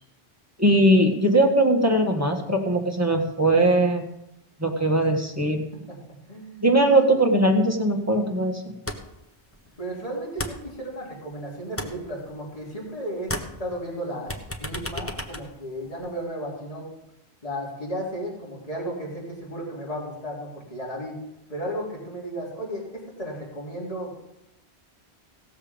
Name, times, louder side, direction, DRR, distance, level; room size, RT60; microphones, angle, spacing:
voice 1, 0.6-4.1 4.6-5.6 6.6-8.8, right 1 dB, 15° right, 1 dB, 1.7 m, -20 dB
voice 2, 6.3-6.7 9.8-13.3 13.6-14.3 14.6-16.8 17.4-21.1 21.5-22.8 23.2-24.1, equal, 35° left, -4 dB, 3.4 m, -34 dB
sound 1, 8.9-9.3 9.5-11.3 11.6-12.9 13.2-16.2, left 1 dB, 15° left, 0.9 m, -35 dB
17.0 x 7.2 x 5.3 m, 0.86 s
omnidirectional pair, 1.1 m